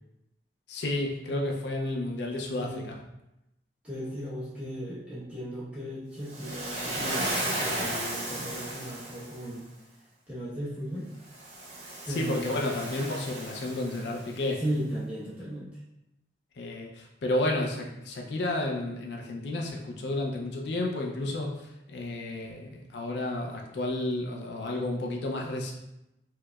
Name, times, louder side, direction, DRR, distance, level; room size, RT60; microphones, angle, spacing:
voice 1, 0.7-3.0 11.9-14.6 16.6-25.7, left 2 dB, 70° left, 0 dB, 0.4 m, -31 dB
voice 2, 3.8-9.6 10.3-11.1 12.1-12.7 14.6-15.8, equal, 5° right, -9 dB, 1.0 m, -36 dB
Waves surf, 6.3-9.5 11.3-14.4, right 1 dB, 40° right, 0.6 m, -34 dB
4.5 x 2.1 x 2.3 m, 0.89 s
head